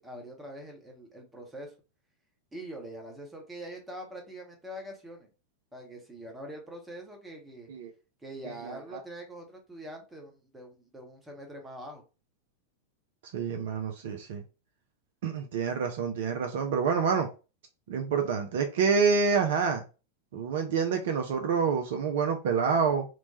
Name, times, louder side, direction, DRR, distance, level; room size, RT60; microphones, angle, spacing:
voice 1, 0.0-1.7 2.5-5.3 5.7-7.7 8.2-12.0, right 1 dB, 10° right, 0.8 m, -44 dB
voice 2, 8.4-9.0 13.3-14.4 15.2-17.3 17.9-19.8 20.3-23.1, right 5 dB, 55° right, 0.4 m, -27 dB
2.9 x 2.1 x 2.7 m
figure-of-eight pair, 90°, 0 cm